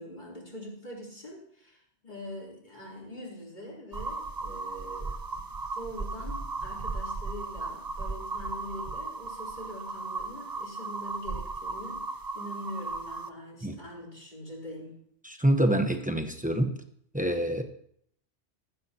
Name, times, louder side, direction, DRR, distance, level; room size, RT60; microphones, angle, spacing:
voice 1, 0.0-15.0, equal, 40° left, -4 dB, 3.9 m, -43 dB
sound 1, 3.9-13.3, right 3 dB, 35° right, 0.3 m, -36 dB
voice 2, 15.2-16.7 17.1-17.6, right 1 dB, 10° right, 5 dB, 0.9 m, -26 dB
15.0 x 14.5 x 2.9 m, 0.68 s
omnidirectional pair, 1.2 m